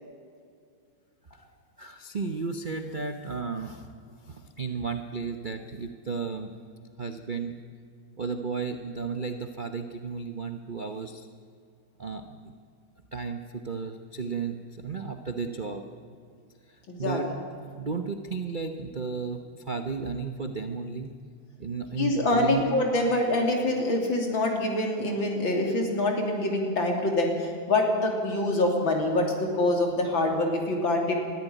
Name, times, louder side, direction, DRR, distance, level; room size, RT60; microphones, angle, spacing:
voice 1, 1.8-3.9 4.2-6.5 7.0-7.5 8.2-11.3 12.0-12.5 13.1-15.8 17.0-17.4 17.8-21.1 21.6-22.6, right 5 dB, 45° right, 6 dB, 0.6 m, -34 dB
voice 2, 16.9-17.2 22.0-31.2, left 2 dB, 70° left, 2 dB, 3.8 m, -25 dB
21.0 x 14.0 x 9.2 m, 2.3 s
omnidirectional pair, 2.2 m